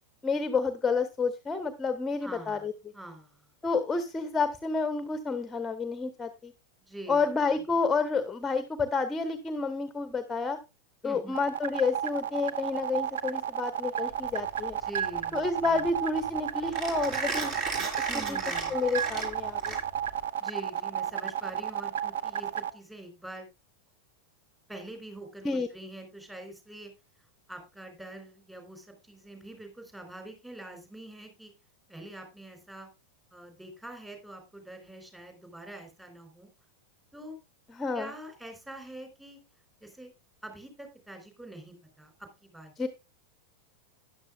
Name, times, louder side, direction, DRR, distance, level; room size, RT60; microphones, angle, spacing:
voice 1, 0.2-2.7 3.6-6.5 7.1-10.6 11.0-14.8 15.3-17.5 18.3-18.4 18.7-19.8 25.4-25.7 37.7-38.1 42.8-42.9, left 4 dB, 15° left, 10 dB, 1.0 m, -29 dB
voice 2, 2.2-3.5 6.9-7.3 7.5-7.6 11.0-11.4 14.8-15.8 18.1-18.8 20.4-23.5 24.7-26.9 27.5-31.5 31.9-32.9 33.3-36.5 37.1-37.4 37.9-39.4 39.8-40.1 40.4-42.7, right 1 dB, 10° right, 5 dB, 4.1 m, -45 dB
sound 1, 11.3-22.7, right 9 dB, 60° right, 0.9 m, -32 dB
Mechanisms, 14.1-20.2, right 3 dB, 40° right, 4.2 m, -36 dB
13.0 x 10.5 x 2.4 m, 0.26 s
figure-of-eight pair, 90°, 0 cm